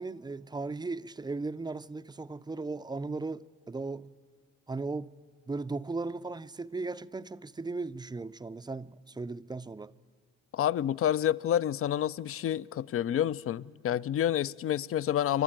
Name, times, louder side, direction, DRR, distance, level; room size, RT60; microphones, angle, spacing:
voice 1, 0.0-4.1 4.7-5.1 5.5-9.9, right 3 dB, 15° right, 0.4 m, -37 dB
voice 2, 10.5-15.4, left 10 dB, 50° left, 0.5 m, -29 dB
27.5 x 12.5 x 9.0 m
cardioid pair, 90°, 30 cm